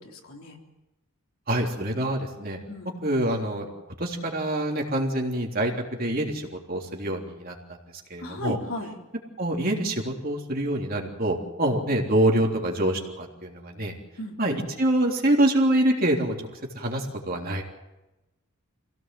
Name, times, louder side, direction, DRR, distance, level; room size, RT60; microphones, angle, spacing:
voice 1, 0.1-0.6 2.7-3.0 8.2-8.9 14.2-14.4, left 1 dB, 70° left, 1 dB, 3.5 m, -35 dB
voice 2, 1.5-2.6 3.0-3.7 4.0-5.7 6.0-7.5 8.1-8.6 9.4-13.9 14.4-16.3 16.7-17.6, right 1 dB, 40° right, 1 dB, 3.4 m, -25 dB
25.5 x 17.0 x 7.7 m, 1.0 s
head